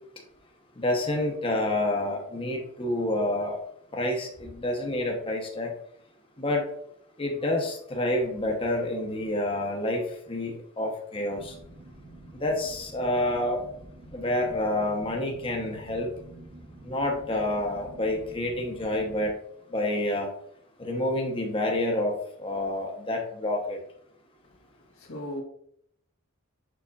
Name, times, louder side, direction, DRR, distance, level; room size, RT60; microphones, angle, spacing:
voice 1, 0.8-3.6 3.9-5.7 6.4-6.7 7.2-10.0 10.3-11.5 12.4-13.6 14.1-16.1 16.8-19.3 19.7-20.3 20.8-23.8, left 1 dB, 25° left, 1.0 m, -28 dB
sound 1, 11.3-19.3, right 1 dB, 90° right, 1.7 m, -48 dB
voice 2, 24.4-25.4, left 1 dB, 90° left, 1.7 m, -39 dB
6.9 x 5.8 x 2.5 m
head